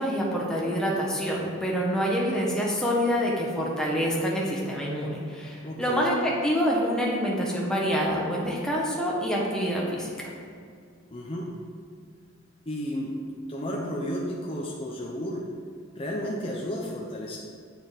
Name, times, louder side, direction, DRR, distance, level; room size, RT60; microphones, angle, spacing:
voice 1, 0.0-10.3, equal, 5° left, -4 dB, 1.5 m, -26 dB
voice 2, 5.6-6.1 11.1-11.5 12.7-13.2 13.5-15.4 16.0-17.4, equal, 30° left, -3 dB, 0.8 m, -32 dB
7.9 x 6.9 x 5.3 m, 2.2 s
head